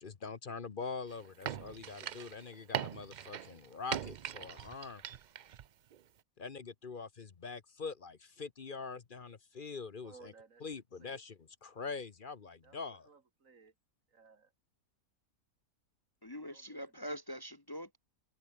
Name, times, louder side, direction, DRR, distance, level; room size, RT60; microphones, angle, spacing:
voice 1, 0.0-5.0 6.4-10.3 10.6-13.1, left 4 dB, 40° left, 1.1 m, -44 dB
sound 1, 1.1-5.7 5.9-6.0, right 9 dB, 85° right, 0.4 m, -41 dB
voice 2, 10.0-10.7 11.0-11.2 12.6-13.7 14.1-14.5 16.5-17.0, right 5 dB, 65° right, 2.7 m, -60 dB
voice 3, 16.2-18.0, equal, 20° left, 0.9 m, -43 dB
open air
omnidirectional pair, 1.5 m